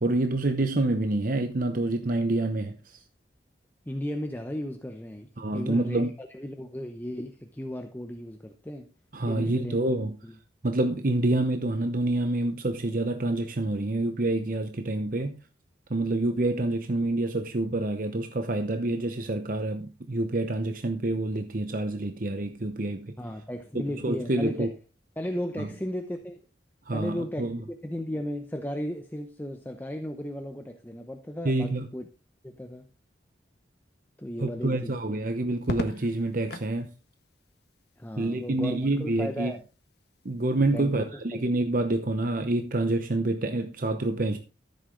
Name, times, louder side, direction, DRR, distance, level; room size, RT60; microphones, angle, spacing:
voice 1, 0.0-3.0 5.4-6.1 9.1-10.1 10.6-15.4 15.9-23.1 24.0-24.7 25.6-25.7 26.9-27.6 31.4-31.9 34.4-36.9 38.2-39.5 40.2-44.4, right 2 dB, 45° right, 0.9 m, -27 dB
voice 2, 3.9-8.9 9.3-9.8 10.2-10.4 23.2-24.7 25.2-26.4 26.9-27.5 27.8-32.0 32.4-32.8 34.2-35.0 38.0-39.6 40.7-41.2, equal, 10° left, 0.8 m, -35 dB
Crackle, 35.6-36.8 38.3-38.9, left 1 dB, 60° left, 1.4 m, -36 dB
14.0 x 7.8 x 3.9 m
head